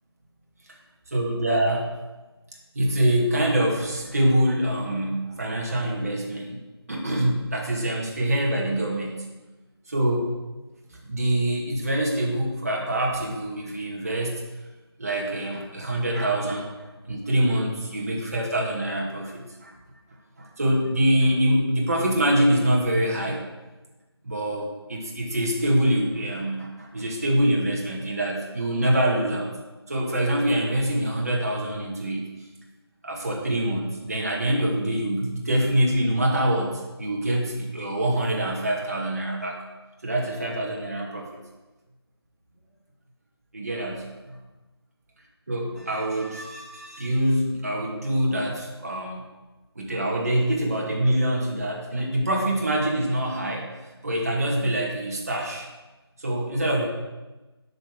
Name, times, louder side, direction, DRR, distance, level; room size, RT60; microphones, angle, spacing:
voice 1, 1.1-1.9 2.7-6.6 6.9-9.1 9.9-10.3 11.0-14.4 15.0-16.7 17.1-19.7 20.4-23.4 24.2-29.5 29.9-32.3 33.0-39.6 40.0-41.3 43.5-44.4 45.5-49.2 49.8-53.7 54.0-55.7 56.2-56.8, right 1 dB, 35° right, -2 dB, 2.3 m, -25 dB
12.0 x 6.6 x 6.4 m, 1.1 s
figure-of-eight pair, 165°, 14 cm